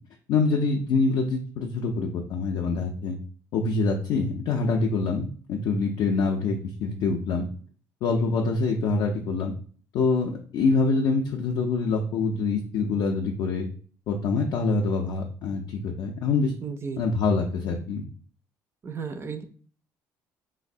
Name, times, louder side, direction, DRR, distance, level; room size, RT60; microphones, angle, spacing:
voice 1, 0.3-3.2 3.5-7.4 8.0-9.5 9.9-13.7 14.1-16.5 17.0-18.0, left 4 dB, 70° left, 2 dB, 0.4 m, -25 dB
voice 2, 16.6-17.0 18.8-19.4, right 5 dB, 35° right, 9 dB, 0.4 m, -34 dB
3.2 x 2.0 x 2.5 m, 0.44 s
supercardioid pair, 80°, 7 cm